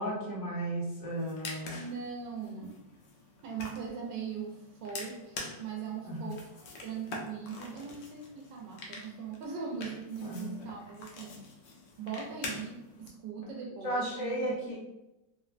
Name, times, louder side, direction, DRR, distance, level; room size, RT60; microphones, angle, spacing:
voice 1, 0.0-1.8 6.0-6.3 10.2-10.5 13.8-14.8, right 1 dB, 40° left, -5 dB, 0.7 m, -34 dB
sound 1, 1.1-13.1, left 3 dB, 80° left, 1.2 m, -46 dB
voice 2, 1.6-2.8 3.4-6.5 6.8-11.4 12.0-14.8, right 6 dB, 80° right, -1 dB, 1.2 m, -40 dB
3.4 x 2.1 x 2.4 m, 0.94 s
omnidirectional pair, 1.9 m